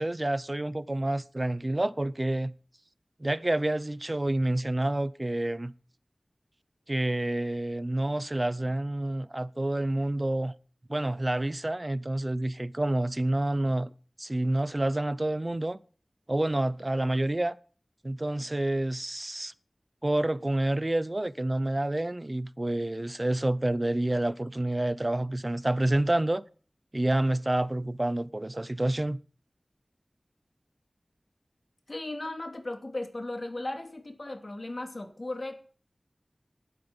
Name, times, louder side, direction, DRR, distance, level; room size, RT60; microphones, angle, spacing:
voice 1, 0.0-2.5 3.2-5.7 6.9-10.5 10.9-13.9 14.2-15.8 16.3-17.6 18.0-19.5 20.0-26.4 26.9-29.2, right 1 dB, 35° right, 0.7 m, -28 dB
voice 2, 31.9-35.6, left 2 dB, 50° left, 2.6 m, -36 dB
12.0 x 9.3 x 7.0 m
wide cardioid pair, 60°, 0 cm